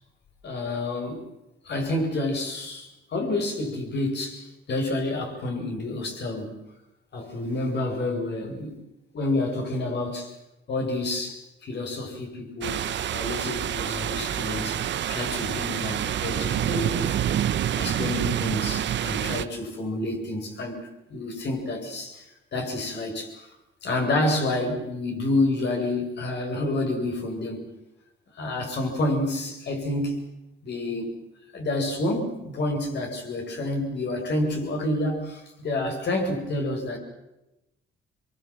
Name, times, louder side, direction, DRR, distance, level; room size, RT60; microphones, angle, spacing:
voice 1, 0.4-1.3 1.6-6.6 7.1-8.8 9.1-10.3 10.7-14.8 15.1-17.2 17.7-22.3 22.5-23.5 23.8-27.7 28.3-30.3 30.6-31.1 31.5-37.0, left 2 dB, 60° left, 3 dB, 7.9 m, -29 dB
sound 1, 12.6-19.4, right 10 dB, 65° right, 1.2 m, -27 dB
26.0 x 23.5 x 7.7 m, 0.95 s
cardioid pair, 90°, 20 cm